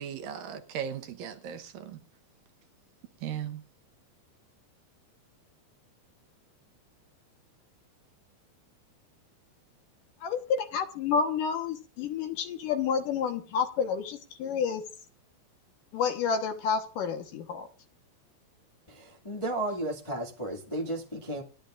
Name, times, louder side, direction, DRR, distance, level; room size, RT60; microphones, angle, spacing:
voice 1, 0.0-2.0 3.2-3.6, right 9 dB, 70° right, 2.5 m, -37 dB
voice 2, 10.2-14.8 15.9-17.7, left 6 dB, 65° left, 2.6 m, -29 dB
voice 3, 18.9-21.4, right 1 dB, 20° left, 0.8 m, -34 dB
28.0 x 11.0 x 2.5 m
omnidirectional pair, 4.5 m